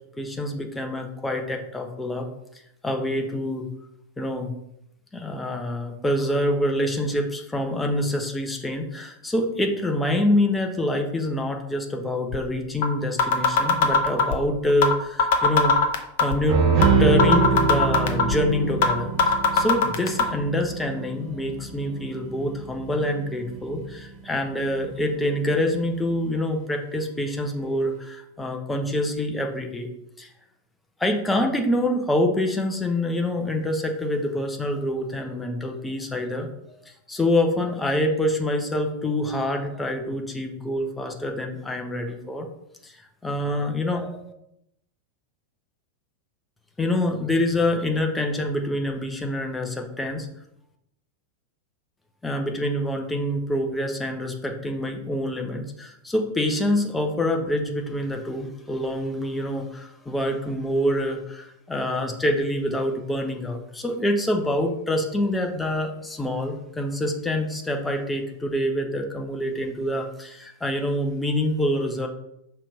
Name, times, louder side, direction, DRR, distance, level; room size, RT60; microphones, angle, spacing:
voice 1, 0.2-2.3 2.8-3.7 4.2-4.5 5.1-15.7 16.2-16.6 17.0-29.9 30.2-30.3 31.0-36.5 36.8-42.5 42.8-44.3 46.8-50.3 52.2-72.1, left 1 dB, 10° left, 3 dB, 0.9 m, -26 dB
sound 1, 12.3-12.4 12.8-12.9 13.2-14.4 14.8-14.9 15.2-16.4 16.8-16.9 17.2-18.4 18.8-18.9 19.2-20.2, left 5 dB, 55° left, 0.8 m, -18 dB
sound 2, 16.5-24.1 24.6-25.0, right 5 dB, 40° right, 1.1 m, -25 dB
5.5 x 3.4 x 5.4 m, 0.80 s
figure-of-eight pair, 90°, 0 cm